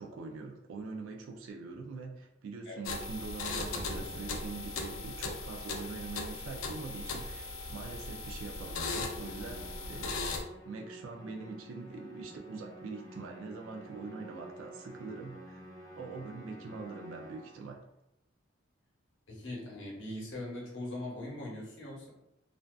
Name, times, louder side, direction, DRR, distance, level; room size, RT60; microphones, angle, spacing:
voice 1, 0.0-15.6 16.0-17.9, right 4 dB, 75° right, 2 dB, 0.3 m, -43 dB
sound 1, 2.8-10.4, left 3 dB, 90° left, 0.4 m, -38 dB
sound 2, 3.6-5.2, equal, 35° right, 1.0 m, -47 dB
Musical instrument, 9.3-17.8, right 1 dB, 20° left, 0.4 m, -50 dB
voice 2, 19.3-22.1, left 1 dB, 65° left, -3 dB, 0.8 m, -41 dB
2.4 x 2.2 x 2.2 m, 0.85 s
head